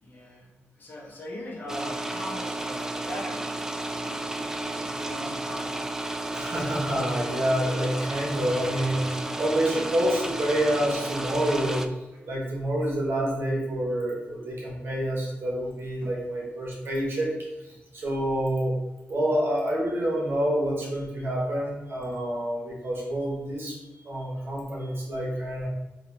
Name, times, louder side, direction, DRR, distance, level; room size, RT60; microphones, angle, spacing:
voice 1, 0.0-5.8 16.0-16.1, left 1 dB, 45° left, -3 dB, 1.1 m, -40 dB
sound 1, 1.7-11.9, right 2 dB, 10° right, 0.3 m, -32 dB
voice 2, 6.3-9.1 9.4-11.8 12.2-17.3 17.6-18.8 19.1-25.7, right 1 dB, 60° right, -3 dB, 1.3 m, -28 dB
4.1 x 2.8 x 3.4 m, 1.1 s
cardioid pair, 85°, 4 cm